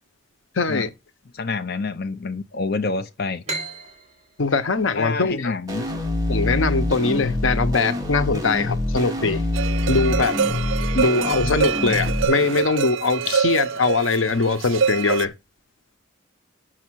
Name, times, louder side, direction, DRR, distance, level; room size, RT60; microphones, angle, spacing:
voice 1, 0.5-0.9 4.4-5.5 6.3-9.4 9.9-10.4 10.9-15.3, left 3 dB, 85° left, 1.0 m, -22 dB
voice 2, 1.3-3.4 5.0-6.0, left 3 dB, 50° left, 0.7 m, -27 dB
sound 1, 3.4-6.9, right 2 dB, 35° right, 3.4 m, -36 dB
sound 2, 5.7-12.2, left 2 dB, 20° right, 2.1 m, -25 dB
sound 3, 9.5-15.3, right 6 dB, 90° right, 0.5 m, -25 dB
6.7 x 6.3 x 6.3 m
head